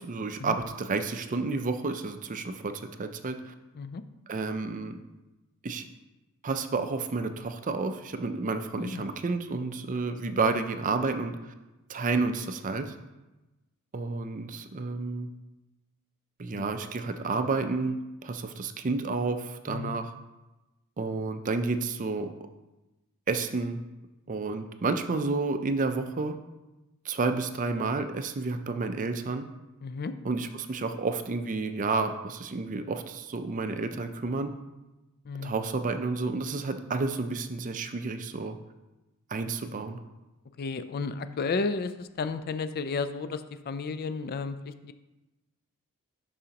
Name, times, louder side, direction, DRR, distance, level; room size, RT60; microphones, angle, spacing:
voice 1, 0.0-3.5 4.3-5.0 5.6-5.8 6.4-11.5 11.9-12.9 13.9-15.3 16.4-20.1 21.0-22.3 23.3-23.8 24.3-26.4 27.1-29.4 30.2-34.5 35.4-38.6 39.3-40.0, right 3 dB, 35° right, 8 dB, 0.5 m, -30 dB
voice 2, 19.7-20.1 29.8-30.1 35.3-35.6 40.6-44.9, left 4 dB, 45° left, 11 dB, 0.4 m, -33 dB
11.0 x 4.9 x 2.9 m, 1.1 s
head